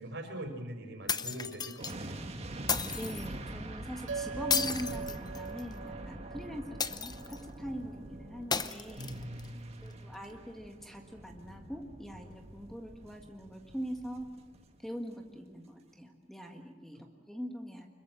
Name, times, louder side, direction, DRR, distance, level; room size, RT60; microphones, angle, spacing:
voice 1, 0.0-2.2 9.0-10.1 17.0-17.1, right 1 dB, 65° right, 5 dB, 5.2 m, -43 dB
sound 1, 1.1-1.9 2.7-3.3 4.5-5.7 6.8-7.5 8.5-9.5, left 6 dB, 20° left, 0.8 m, -33 dB
sound 2, 1.8-14.9 15.2-15.4, right 1 dB, 35° right, 2.0 m, -45 dB
voice 2, 3.0-9.1 9.8-14.3 14.8-17.9, equal, ahead, 3 dB, 1.7 m, -42 dB
sound 3, 4.1-8.8, right 6 dB, 85° right, 0.9 m, -43 dB
26.0 x 22.0 x 7.9 m, 1.3 s
head